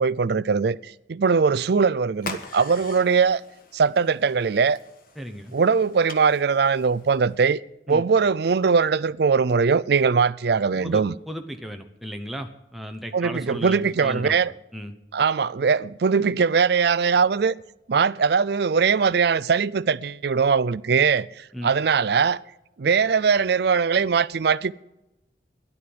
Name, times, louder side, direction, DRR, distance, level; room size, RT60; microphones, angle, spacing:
voice 1, 0.0-3.4 3.7-4.8 5.5-7.6 7.9-11.1 13.1-14.5 15.1-17.6 17.9-22.4 22.8-24.7, right 5 dB, 55° right, 0.4 m, -21 dB
sound 1, 2.2-7.4, left 3 dB, 50° left, 1.4 m, -42 dB
voice 2, 5.2-5.6 7.9-8.0 10.8-14.3 14.7-14.9 21.5-21.7, equal, ahead, 0.8 m, -35 dB
13.5 x 11.5 x 7.8 m
head